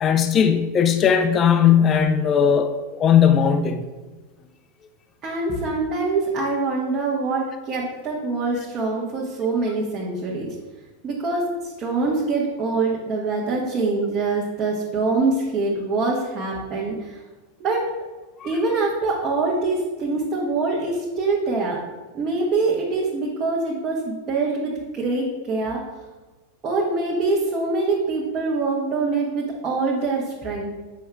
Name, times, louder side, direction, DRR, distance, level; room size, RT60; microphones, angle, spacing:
voice 1, 0.0-3.9 18.4-18.5, left 8 dB, 25° left, 8 dB, 0.4 m, -18 dB
voice 2, 5.2-10.5 11.0-17.2 17.6-17.9 18.4-21.8 22.1-25.8 26.6-30.7, right 3 dB, 30° right, -4 dB, 1.1 m, -24 dB
7.7 x 5.5 x 2.2 m, 1.2 s
figure-of-eight pair, 90°, 0 cm